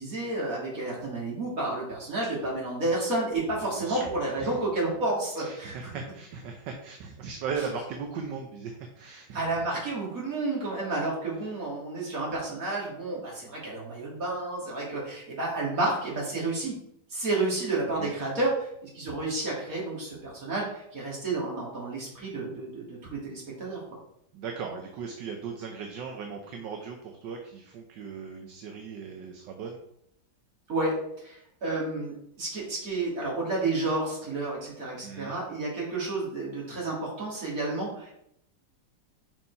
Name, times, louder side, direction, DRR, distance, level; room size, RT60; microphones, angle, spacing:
voice 1, 0.0-5.8 9.3-16.7 17.1-24.0 30.7-38.1, right 2 dB, 50° right, -5 dB, 3.1 m, -31 dB
voice 2, 3.8-4.1 4.4-4.6 5.4-9.6 18.0-18.1 24.3-29.8 35.0-35.4, right 5 dB, 75° right, 3 dB, 1.4 m, -38 dB
5.9 x 4.6 x 5.5 m, 0.75 s
omnidirectional pair, 2.0 m